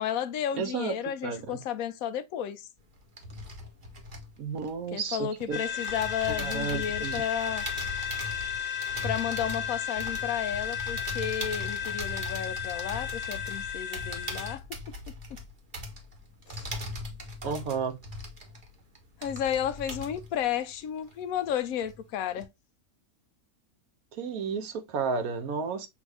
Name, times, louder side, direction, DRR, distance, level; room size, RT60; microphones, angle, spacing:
voice 1, 0.0-2.6 4.9-7.7 9.0-14.6 16.5-16.7 19.2-22.5, left 9 dB, 70° left, 1.0 m, -32 dB
voice 2, 0.6-1.0 1.2-1.6 4.4-5.6 6.4-7.3 17.4-18.0 24.1-25.9, right 5 dB, 70° right, 1.1 m, -32 dB
sound 1, 2.8-5.4 5.8-21.5 21.8-22.4, left 1 dB, 40° right, 1.0 m, -40 dB
sound 2, 5.5-14.5, left 8 dB, 40° left, 1.0 m, -34 dB
6.1 x 2.5 x 3.2 m
omnidirectional pair, 1.6 m